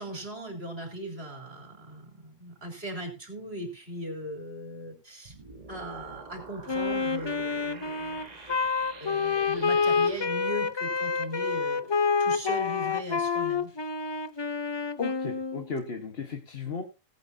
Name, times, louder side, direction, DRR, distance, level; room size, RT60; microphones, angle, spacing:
voice 1, 0.0-5.3 5.7-8.3 9.0-13.7, right 1 dB, 50° right, 3 dB, 4.0 m, -38 dB
sound 1, 5.3-10.3, right 3 dB, 35° right, 1.4 m, -47 dB
Wind instrument woodwind instrument, 6.7-15.7, left 5 dB, 35° left, 0.4 m, -28 dB
voice 2, 15.0-16.8, left 5 dB, 50° left, 4 dB, 1.6 m, -35 dB
18.5 x 8.8 x 2.7 m, 0.29 s
omnidirectional pair, 1.3 m